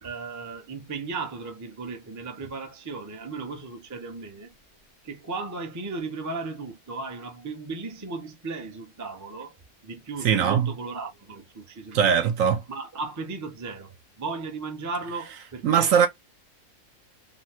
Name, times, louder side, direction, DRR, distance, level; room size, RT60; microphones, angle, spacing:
voice 1, 0.0-4.5 5.0-9.5 9.8-12.3 12.7-15.9, right 3 dB, 20° right, 0.5 m, -36 dB
voice 2, 10.2-10.7 11.9-12.6 15.6-16.1, right 7 dB, 70° right, 1.0 m, -20 dB
3.9 x 2.0 x 2.7 m
omnidirectional pair, 1.6 m